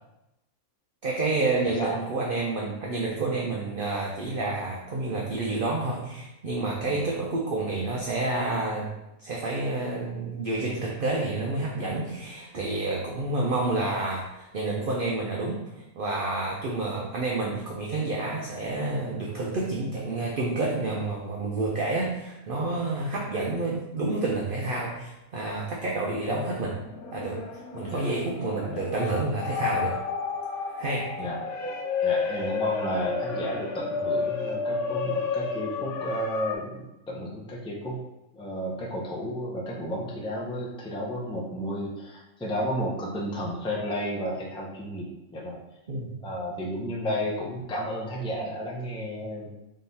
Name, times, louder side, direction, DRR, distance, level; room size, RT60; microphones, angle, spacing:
voice 1, 1.0-8.9 9.2-15.6 15.9-26.8 27.1-27.4 27.7-30.0 30.7-31.1 45.9-46.1, right 2 dB, 55° right, -2 dB, 0.6 m, -29 dB
voice 2, 1.6-2.0 6.9-7.1 27.9-28.1 28.7-28.9 31.2-31.4 32.0-38.0 38.3-45.6 46.2-49.6, equal, 5° left, -3 dB, 0.4 m, -32 dB
sound 1, 26.2-36.5, left 5 dB, 55° left, 0.7 m, -31 dB
3.8 x 3.1 x 4.0 m, 0.91 s
omnidirectional pair, 1.5 m